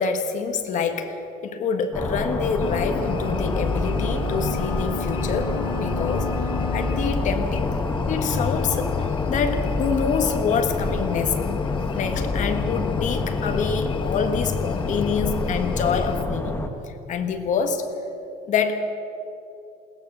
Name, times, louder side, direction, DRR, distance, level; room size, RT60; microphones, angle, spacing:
voice 1, 0.0-5.5 5.8-7.8 8.1-11.4 11.9-16.6 16.9-17.8 18.5-18.8, left 5 dB, 45° left, 7 dB, 1.6 m, -26 dB
sound 1, 1.9-16.7, left 2 dB, 15° left, 1.3 m, -28 dB
sound 2, 2.6-7.2, left 2 dB, 80° left, 2.2 m, -35 dB
sound 3, 2.6-16.2, left 6 dB, 30° left, 0.6 m, -30 dB
21.0 x 18.5 x 6.9 m, 2.9 s
cardioid pair, 165°, 18 cm